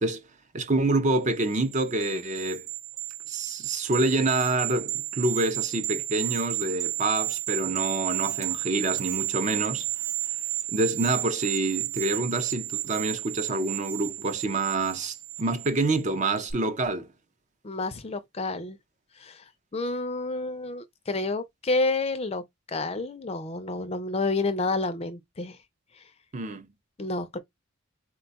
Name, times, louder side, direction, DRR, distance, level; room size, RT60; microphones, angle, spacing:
voice 1, 0.5-2.7 3.3-9.9 10.7-17.1 26.3-26.7, right 2 dB, 35° right, 0.5 m, -27 dB
sound 1, 1.4-16.0 16.4-16.5, right 15 dB, 65° right, 0.9 m, -32 dB
voice 2, 17.6-18.8 19.2-19.4 19.7-22.4 22.7-25.6 27.0-27.4, left 3 dB, 30° left, 0.4 m, -29 dB
4.1 x 2.3 x 3.9 m
head